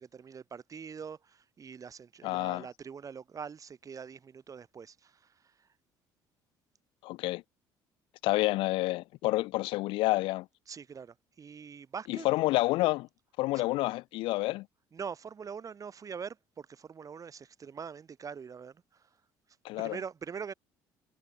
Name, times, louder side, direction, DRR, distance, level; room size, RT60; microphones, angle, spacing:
voice 1, 0.0-5.7 10.7-12.3 13.5-13.6 14.9-19.1 19.8-20.5, right 6 dB, 40° right, 2.6 m, -43 dB
voice 2, 2.2-2.7 7.0-7.4 8.2-10.5 12.1-13.1 13.4-14.7 19.6-20.0, left 20 dB, 75° left, 0.4 m, -29 dB
supercardioid pair, 75°, 9 cm